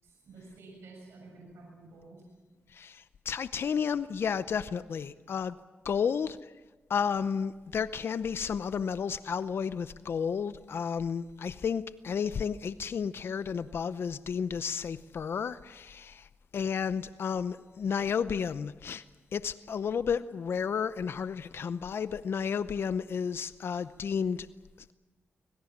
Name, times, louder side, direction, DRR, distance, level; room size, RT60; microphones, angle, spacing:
voice 1, 0.0-2.2, right 3 dB, 85° right, -1 dB, 7.0 m, -51 dB
voice 2, 2.7-5.6 5.8-6.5 6.9-16.3 16.5-19.0 19.3-24.5, left 6 dB, 65° left, 14 dB, 0.7 m, -32 dB
25.5 x 22.5 x 7.3 m, 1.2 s
cardioid pair, 70°, 4 cm